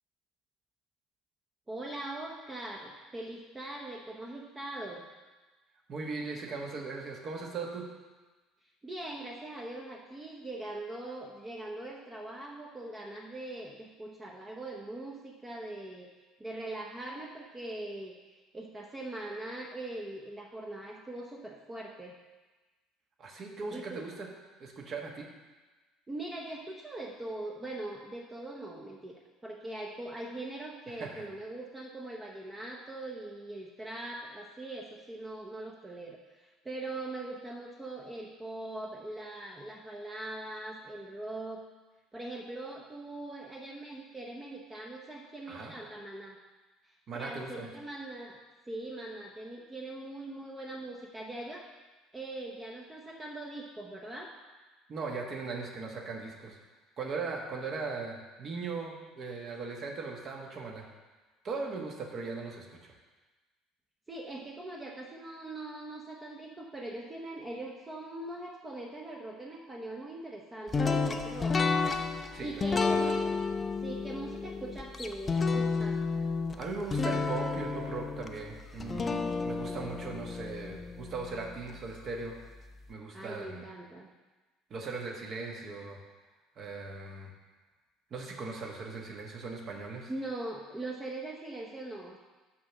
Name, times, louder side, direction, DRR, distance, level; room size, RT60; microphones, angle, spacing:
voice 1, 1.7-5.0 8.8-16.1 16.4-22.1 23.7-24.1 26.1-41.6 42.1-46.4 46.8-48.4 48.7-51.7 52.1-54.3 64.1-71.6 72.4-73.3 73.8-76.0 83.1-84.1 90.1-92.2, right 2 dB, 20° right, -1 dB, 0.9 m, -41 dB
voice 2, 5.9-7.9 23.2-24.3 24.6-25.3 30.9-31.3 45.5-45.7 47.1-47.7 54.9-56.6 57.0-60.9 61.4-62.9 72.3-73.0 76.6-82.4 82.9-83.6 84.7-86.0 86.6-87.3 88.1-90.1, right 4 dB, 40° right, 0 dB, 1.5 m, -39 dB
sound 1, 70.7-81.8, left 4 dB, 25° left, 0.6 m, -31 dB
6.1 x 5.6 x 6.1 m, 1.2 s
figure-of-eight pair, 60°, 0 cm